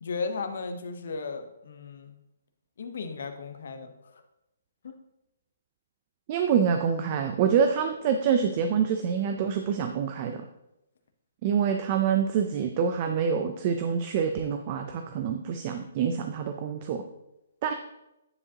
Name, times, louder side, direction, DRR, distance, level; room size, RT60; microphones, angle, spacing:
voice 1, 0.0-2.1 2.8-4.2 4.8-4.9, left 4 dB, 65° left, 7 dB, 0.9 m, -35 dB
voice 2, 6.3-10.4 11.4-17.0 17.6-17.7, right 7 dB, 35° right, 6 dB, 0.5 m, -26 dB
9.7 x 4.8 x 2.8 m, 0.88 s
hypercardioid pair, 160°, 0 cm